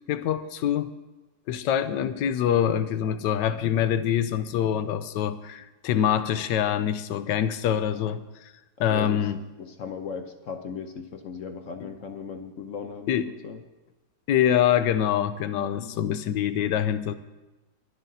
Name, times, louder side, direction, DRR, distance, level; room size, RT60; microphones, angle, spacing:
voice 1, 0.1-0.9 1.5-8.5 8.8-9.4 13.1-13.3 14.3-17.1, left 9 dB, 80° left, 12 dB, 1.3 m, -25 dB
voice 2, 1.9-2.9 8.8-9.3 9.6-13.6 15.7-16.7, left 6 dB, 60° left, 7 dB, 0.9 m, -38 dB
23.5 x 11.5 x 2.8 m, 1.1 s
omnidirectional pair, 1.9 m